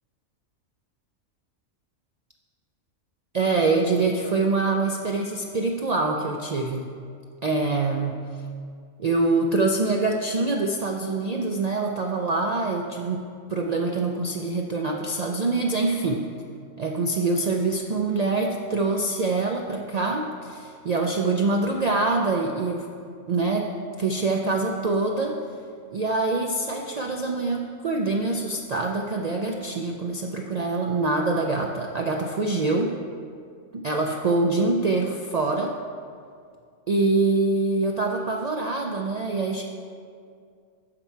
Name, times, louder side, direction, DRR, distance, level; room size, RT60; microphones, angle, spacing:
voice 1, 3.3-6.9 7.4-8.2 9.0-16.3 16.8-22.9 23.3-23.7 24.0-25.4 25.9-33.0 33.7-35.8 36.9-39.6, right 3 dB, 80° right, 1 dB, 0.3 m, -25 dB
9.8 x 6.0 x 4.5 m, 2.3 s
omnidirectional pair, 1.4 m